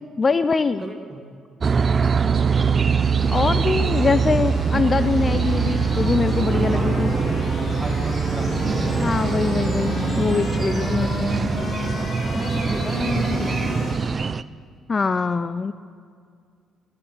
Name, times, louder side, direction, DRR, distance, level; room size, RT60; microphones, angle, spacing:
voice 1, 0.2-0.8 3.3-7.2 9.0-11.3 14.9-15.7, left 4 dB, 35° left, 13 dB, 0.4 m, -23 dB
voice 2, 0.8-1.2 6.7-9.3 10.8-12.0 12.3-13.9, right 1 dB, 20° right, 4 dB, 2.0 m, -34 dB
sound 1, 1.6-14.4, right 6 dB, 40° right, 0.4 m, -23 dB
sound 2, 2.1-14.3, left 6 dB, 55° left, 0.9 m, -32 dB
11.0 x 8.0 x 7.8 m, 2.1 s
hypercardioid pair, 55°, 0 cm